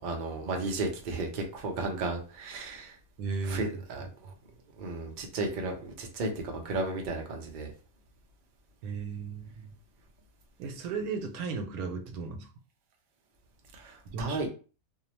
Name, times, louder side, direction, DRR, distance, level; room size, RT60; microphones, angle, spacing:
voice 1, 0.0-3.0 3.4-4.3 4.8-7.7 13.7-14.5, right 3 dB, 55° right, 2 dB, 0.5 m, -34 dB
voice 2, 3.2-3.7 8.8-9.7 10.6-12.5 14.1-14.4, right 4 dB, 85° right, 4 dB, 1.1 m, -35 dB
2.7 x 2.0 x 2.9 m, 0.36 s
omnidirectional pair, 1.5 m